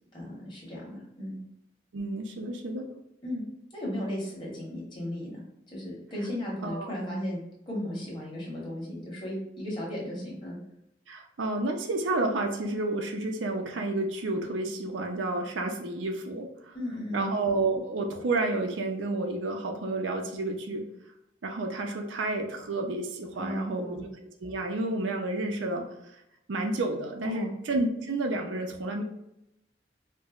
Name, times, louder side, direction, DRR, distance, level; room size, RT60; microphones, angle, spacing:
voice 1, 0.1-1.4 3.2-3.4 3.7-5.4 5.7-7.4 7.7-10.6 16.7-17.3 23.3-24.0 27.2-27.5, left 1 dB, 25° left, -5 dB, 1.2 m, -35 dB
voice 2, 1.9-2.9 6.6-6.9 11.1-16.7 17.1-20.8 21.4-25.8 26.5-29.0, right 2 dB, 85° right, 3 dB, 0.5 m, -30 dB
4.4 x 2.1 x 2.4 m, 0.83 s
head